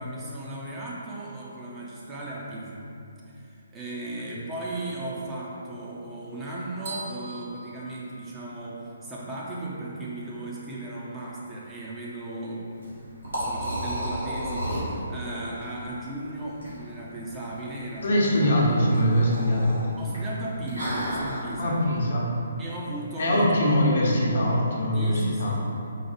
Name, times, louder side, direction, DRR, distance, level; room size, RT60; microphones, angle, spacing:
voice 1, 0.0-2.9 3.3-18.5 20.0-21.9 22.6-23.6 24.9-25.6, right 2 dB, 15° right, -6 dB, 0.6 m, -36 dB
sound 1, 6.9-8.8, right 3 dB, 45° right, 1.1 m, -41 dB
Liquid, 12.7-21.4, equal, 75° right, 1.5 m, -34 dB
voice 2, 18.0-19.8 21.6-22.3 23.2-25.1 25.4-25.5, equal, 55° left, -3 dB, 0.8 m, -22 dB
4.7 x 2.3 x 4.4 m, 2.6 s
figure-of-eight pair, 135°, 0 cm